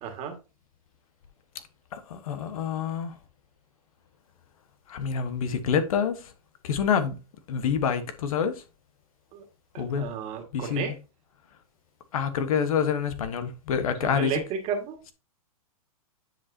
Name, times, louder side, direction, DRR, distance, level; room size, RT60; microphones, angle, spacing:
voice 1, 0.0-0.4 9.3-9.4 9.7-10.9 14.0-15.0, right 7 dB, 35° right, 2.0 m, -32 dB
voice 2, 1.9-3.1 4.9-6.1 6.6-7.1 7.5-8.5 9.8-10.1 10.5-10.8 12.1-14.3, left 7 dB, 65° left, 1.3 m, -27 dB
9.5 x 5.2 x 2.8 m
hypercardioid pair, 130°, 19 cm